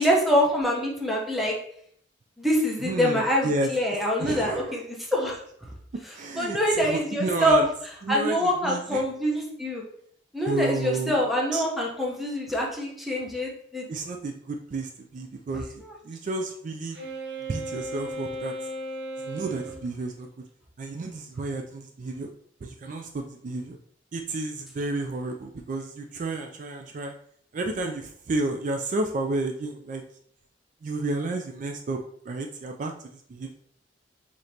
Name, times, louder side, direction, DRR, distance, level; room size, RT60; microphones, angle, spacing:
voice 1, 0.0-1.5 2.4-5.4 6.4-7.6 8.1-9.8 10.3-13.8, equal, ahead, -3 dB, 0.8 m, -25 dB
voice 2, 2.8-3.7 4.2-4.8 6.1-7.7 8.0-9.0 10.5-11.2 11.5-11.6 13.9-17.0 17.5-18.5 19.2-20.3 20.8-22.3 22.6-23.8 24.1-27.1 27.5-30.0 30.8-32.0 32.3-33.6, right 2 dB, 45° right, 4 dB, 0.3 m, -31 dB
Wind instrument woodwind instrument, 16.9-19.8, right 1 dB, 65° right, 0.8 m, -35 dB
5.0 x 2.9 x 2.8 m, 0.65 s
head